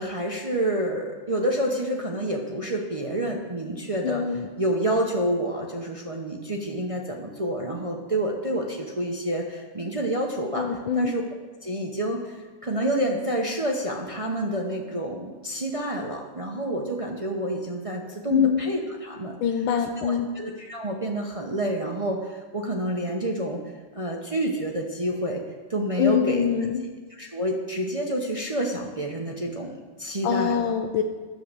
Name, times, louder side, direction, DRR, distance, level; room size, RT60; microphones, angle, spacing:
voice 1, 0.0-11.2 11.6-19.4 20.0-23.6 23.9-25.4 25.7-26.5 27.1-30.7, right 1 dB, 60° right, 0 dB, 0.3 m, -28 dB
voice 2, 4.0-4.5 10.6-11.1 18.3-18.6 19.4-20.3 26.0-26.9 30.2-31.0, left 8 dB, 80° left, 6 dB, 1.4 m, -24 dB
10.5 x 7.5 x 6.7 m, 1.4 s
omnidirectional pair, 2.1 m